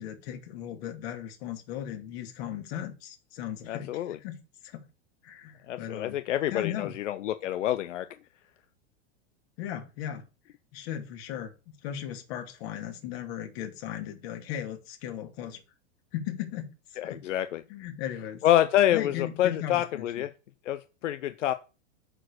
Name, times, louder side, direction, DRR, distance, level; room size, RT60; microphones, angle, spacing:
voice 1, 0.0-4.4 4.6-4.9 5.2-6.2 6.5-6.9 9.6-10.3 10.7-11.5 11.8-15.6 16.1-17.2 17.7-18.4 18.9-20.2, left 10 dB, 55° left, 2.6 m, -37 dB
voice 2, 3.7-4.2 5.7-8.1 17.0-17.6 18.4-20.3 20.7-21.5, left 12 dB, 90° left, 0.7 m, -27 dB
8.8 x 4.5 x 6.5 m
supercardioid pair, 135°, 36 cm